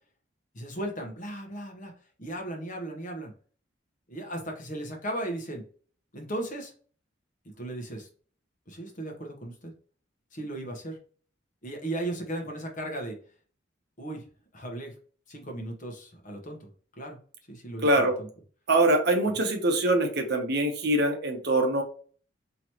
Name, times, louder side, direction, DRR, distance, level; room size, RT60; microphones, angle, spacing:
voice 1, 0.5-1.9 2.2-3.3 4.1-5.6 6.1-6.7 7.4-8.1 8.7-9.7 10.3-11.0 11.6-13.2 14.0-14.2 14.5-14.9 15.3-16.7 17.0-17.2 17.5-18.3, right 1 dB, 40° left, 3 dB, 1.0 m, -36 dB
voice 2, 17.8-18.1 18.7-21.8, right 1 dB, 55° right, 3 dB, 0.9 m, -23 dB
4.5 x 2.9 x 2.9 m, 0.42 s
head